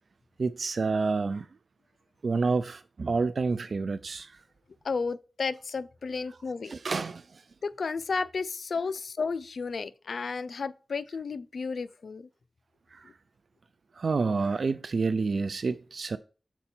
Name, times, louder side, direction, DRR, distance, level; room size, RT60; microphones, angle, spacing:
voice 1, 0.4-1.5 2.2-4.3 6.7-7.4 12.9-13.1 14.0-16.2, right 4 dB, 70° right, 0.4 m, -29 dB
voice 2, 4.8-6.7 7.6-12.3 13.0-13.1, left 4 dB, 75° left, 0.4 m, -33 dB
7.0 x 4.4 x 4.3 m
cardioid pair, 60°, 0 cm